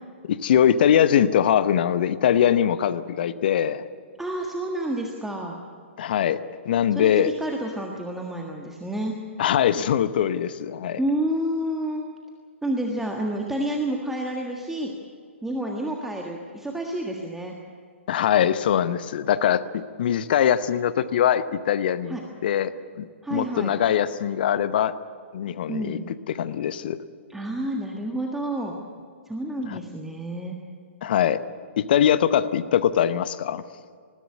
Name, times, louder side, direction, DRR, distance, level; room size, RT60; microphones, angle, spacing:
voice 1, 0.3-3.8 6.0-6.4 6.6-7.3 9.4-11.0 18.1-22.2 22.4-22.7 23.0-24.9 25.3-27.0 29.7-29.8 31.0-31.4 31.8-33.6, left 9 dB, 50° left, 14 dB, 0.9 m, -22 dB
voice 2, 4.2-5.6 6.9-9.1 11.0-12.0 12.6-14.9 15.4-17.5 22.1-22.2 23.2-23.8 25.7-26.1 27.3-28.7 29.3-30.6, right 1 dB, 5° right, 0 dB, 1.6 m, -29 dB
20.5 x 15.0 x 9.7 m, 2.1 s
figure-of-eight pair, 120°, 7 cm